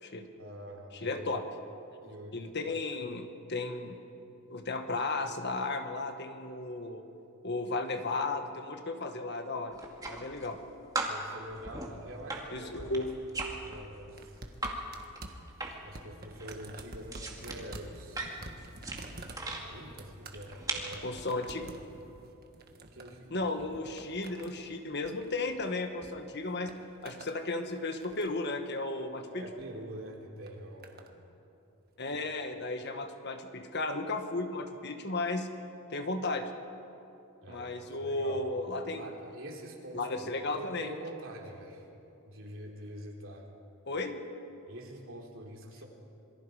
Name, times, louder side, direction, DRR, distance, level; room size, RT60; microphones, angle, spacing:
voice 1, 0.4-1.3 2.0-2.5 11.0-12.9 13.6-14.3 15.8-18.4 19.6-21.1 22.9-23.3 29.3-31.2 37.4-38.4 38.9-41.9 42.2-43.5 44.7-45.9, right 1 dB, 60° right, 0 dB, 3.4 m, -45 dB
voice 2, 1.0-1.4 2.3-4.0 4.5-7.0 7.4-9.8 10.0-10.6 12.5-13.1 21.0-21.7 23.3-26.7 27.0-29.4 32.0-35.5 35.9-36.5 37.5-39.1 39.9-40.9 43.9-44.2, left 2 dB, 50° left, 6 dB, 1.5 m, -34 dB
sound 1, 9.7-10.6 10.9-14.8 15.1-16.0 16.2-19.6 20.3-21.0, right 2 dB, 15° right, 2.2 m, -38 dB
sound 2, 14.2-26.1 26.4-27.4 27.8-28.5 29.4-29.7 30.5-31.1 32.0-32.1, right 2 dB, 45° right, 1.6 m, -49 dB
27.0 x 22.5 x 5.0 m, 2.8 s
head